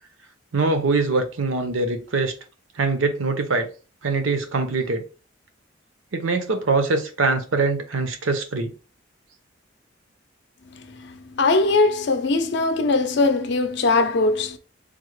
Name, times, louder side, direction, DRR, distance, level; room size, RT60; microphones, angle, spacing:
voice 1, 0.5-2.3 2.8-3.7 4.0-5.0 6.1-8.7, right 3 dB, 85° right, 0.7 m, -23 dB
voice 2, 10.7-14.6, left 3 dB, 60° left, 0.5 m, -21 dB
3.6 x 2.1 x 3.1 m
head